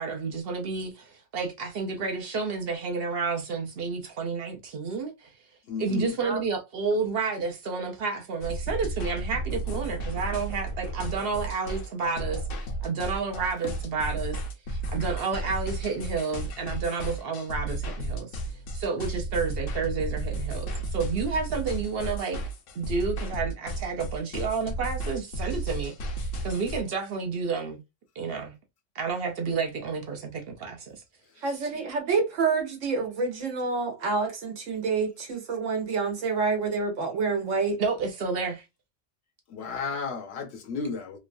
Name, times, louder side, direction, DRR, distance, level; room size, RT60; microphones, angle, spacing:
voice 1, 0.0-5.3 5.8-14.4 14.7-18.3 18.7-22.4 22.7-27.8 28.2-28.5 28.9-31.0 31.4-31.5 37.8-38.6, right 4 dB, 60° right, 0.7 m, -30 dB
voice 2, 5.7-6.2 39.5-41.2, left 5 dB, 65° left, 0.8 m, -33 dB
sound 1, 8.4-26.8, right 2 dB, 85° left, 1.0 m, -33 dB
voice 3, 31.4-37.8, right 4 dB, 80° right, 1.2 m, -28 dB
3.0 x 2.2 x 2.5 m
omnidirectional pair, 1.3 m